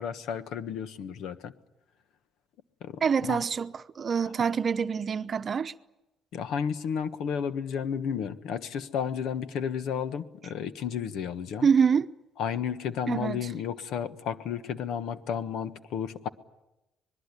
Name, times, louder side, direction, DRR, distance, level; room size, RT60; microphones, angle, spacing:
voice 1, 0.0-1.5 2.8-3.4 6.3-11.7 12.4-16.3, left 7 dB, 75° left, 1.4 m, -32 dB
voice 2, 3.0-5.7 11.6-12.1 13.1-13.5, right 6 dB, 40° right, 0.9 m, -26 dB
25.5 x 21.0 x 9.9 m
cardioid pair, 110°, 0 cm